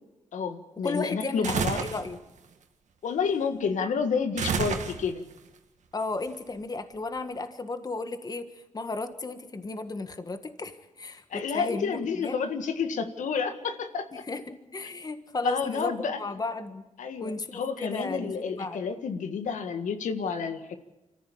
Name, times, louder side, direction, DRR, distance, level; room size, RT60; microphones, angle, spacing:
voice 1, 0.3-1.8 3.0-5.2 11.3-14.2 15.4-16.2 17.0-20.8, left 5 dB, 80° left, 7 dB, 1.8 m, -30 dB
voice 2, 0.8-2.2 5.9-12.4 14.1-16.8 17.2-18.8, left 3 dB, 30° left, 9 dB, 1.6 m, -34 dB
sound 1, 1.4-2.1 4.4-5.3, right 6 dB, 70° right, 1.9 m, -29 dB
25.5 x 14.5 x 8.6 m, 1.0 s
cardioid pair, 90°, 13 cm